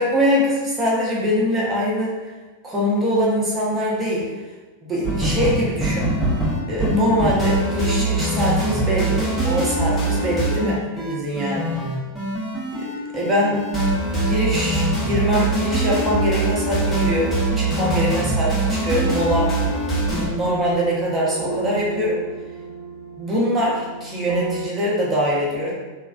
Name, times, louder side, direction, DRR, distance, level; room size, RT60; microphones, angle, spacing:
voice 1, 0.0-2.2 2.6-4.3 4.8-6.1 6.7-11.7 13.1-13.7 14.1-19.5 20.1-22.2 23.2-25.7, equal, 15° right, -5 dB, 0.8 m, -23 dB
sound 1, 5.0-20.3, right 1 dB, 10° left, 0.9 m, -22 dB
sound 2, 19.5-24.7, right 3 dB, 55° right, 0.9 m, -34 dB
3.1 x 2.2 x 2.4 m, 1.2 s
figure-of-eight pair, 90°, 0 cm